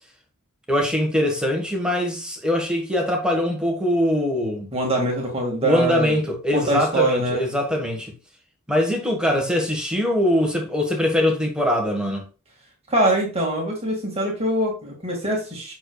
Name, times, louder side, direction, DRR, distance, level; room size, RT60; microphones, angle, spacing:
voice 1, 0.7-4.7 5.6-8.1 8.7-12.3, left 1 dB, 5° right, 1.4 m, -22 dB
voice 2, 4.7-6.2 6.5-7.4 9.4-9.5 12.9-15.7, right 1 dB, 30° right, 1.9 m, -23 dB
7.7 x 6.4 x 2.3 m
head